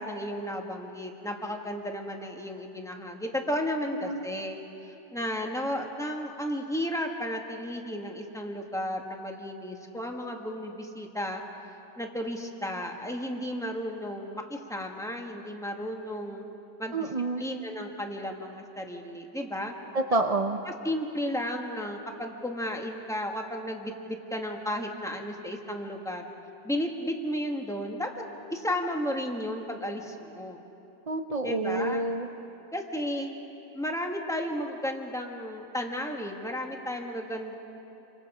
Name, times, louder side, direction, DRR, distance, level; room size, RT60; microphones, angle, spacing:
voice 1, 0.0-4.6 4.8-11.4 12.0-16.4 16.8-17.1 17.4-19.7 20.6-26.3 26.6-28.1 28.5-30.6 31.4-32.1 32.7-33.3 33.7-37.5, equal, ahead, 2 dB, 1.5 m, -33 dB
voice 2, 16.9-17.4 19.9-20.6 31.1-32.3, right 2 dB, 65° right, 5 dB, 0.3 m, -28 dB
29.0 x 24.5 x 5.0 m, 2.9 s
omnidirectional pair, 1.8 m